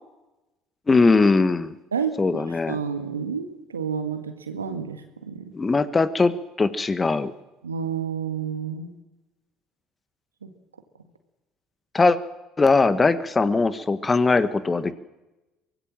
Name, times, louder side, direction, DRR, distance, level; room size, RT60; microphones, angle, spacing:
voice 1, 0.9-1.7 2.2-2.8 5.5-7.3 11.9-12.2 12.6-14.9, left 3 dB, 25° left, 13 dB, 1.5 m, -20 dB
voice 2, 1.9-5.5 7.6-8.9 10.4-10.5, right 6 dB, 90° right, 7 dB, 1.8 m, -30 dB
24.0 x 18.5 x 7.6 m, 1.0 s
hypercardioid pair, 60°, 0 cm